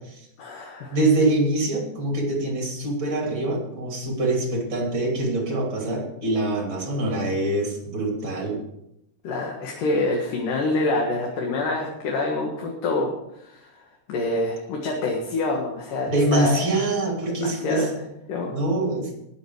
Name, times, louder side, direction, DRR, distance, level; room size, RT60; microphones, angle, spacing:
voice 1, 0.4-1.0 9.2-13.1 13.4-13.8 14.1-16.7 17.3-18.6, left 2 dB, 75° left, 0 dB, 3.2 m, -26 dB
voice 2, 0.9-8.6 16.1-17.9 18.5-19.2, right 2 dB, 40° right, 0 dB, 3.4 m, -24 dB
20.0 x 7.8 x 4.8 m, 0.82 s
omnidirectional pair, 3.8 m